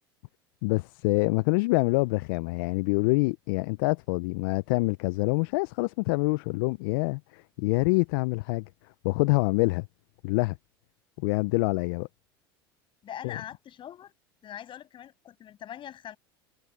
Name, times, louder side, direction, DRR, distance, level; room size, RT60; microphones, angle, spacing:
voice 1, 0.6-8.6 9.0-9.9 10.2-10.6 11.2-12.1 13.2-13.4, left 26 dB, 65° left, 0.8 m, -26 dB
voice 2, 13.0-14.1 14.4-16.2, left 10 dB, 40° left, 7.8 m, -42 dB
hypercardioid pair, 80°, 13 cm